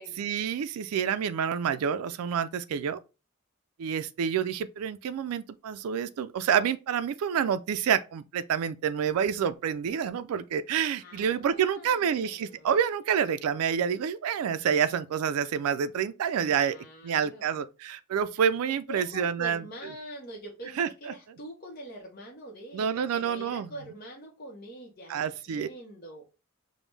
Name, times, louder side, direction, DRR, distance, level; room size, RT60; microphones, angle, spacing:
voice 1, 0.2-3.0 3.8-16.8 17.0-19.6 20.8-21.1 22.7-23.7 25.1-25.7, right 8 dB, 80° right, 0.3 m, -28 dB
voice 2, 11.0-12.7 16.5-17.6 18.7-26.2, equal, 40° left, 0.7 m, -44 dB
5.1 x 2.1 x 3.2 m
head